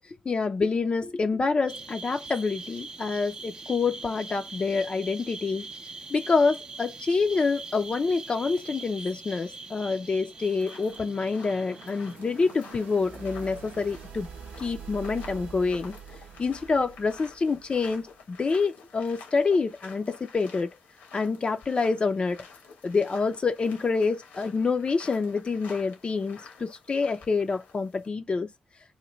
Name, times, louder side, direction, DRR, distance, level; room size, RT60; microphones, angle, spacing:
voice 1, 0.1-5.7 6.1-14.3 14.6-15.9 16.4-20.7 21.1-22.5 22.8-28.5, left 4 dB, 40° left, 0.4 m, -27 dB
sound 1, 1.7-12.2, right 3 dB, 35° right, 0.5 m, -43 dB
sound 2, 9.5-18.2, right 7 dB, 80° right, 0.7 m, -46 dB
sound 3, 10.4-28.1, left 5 dB, 90° left, 1.1 m, -50 dB
3.1 x 2.1 x 3.8 m
supercardioid pair, 55°, 3 cm